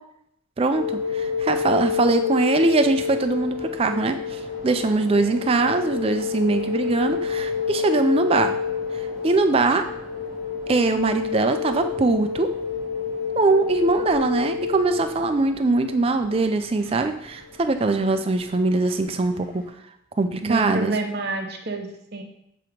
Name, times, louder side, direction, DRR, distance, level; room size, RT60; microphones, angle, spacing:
voice 1, 0.6-8.5 9.2-9.8 10.7-12.5 13.4-19.6 20.2-20.9, right 3 dB, 25° right, 7 dB, 0.3 m, -22 dB
sound 1, 0.7-19.6, left 6 dB, 40° left, 1.5 m, -29 dB
voice 2, 20.4-22.2, right 2 dB, 50° right, 3 dB, 0.8 m, -28 dB
7.4 x 2.9 x 5.0 m, 0.77 s
head